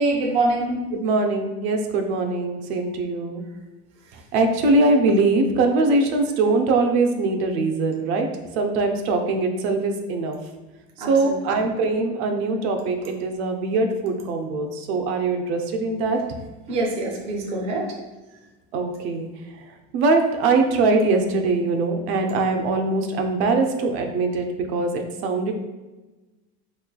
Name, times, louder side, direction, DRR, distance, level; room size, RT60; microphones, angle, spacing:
voice 1, 0.0-0.8 11.0-11.6 16.7-17.9, right 2 dB, 20° right, -1 dB, 0.4 m, -24 dB
voice 2, 0.9-3.4 4.3-8.3 8.6-10.4 11.1-16.2 18.7-19.3 19.9-25.5, right 3 dB, 80° right, 4 dB, 0.6 m, -22 dB
3.6 x 3.1 x 2.2 m, 1.1 s
cardioid pair, 170°, 31 cm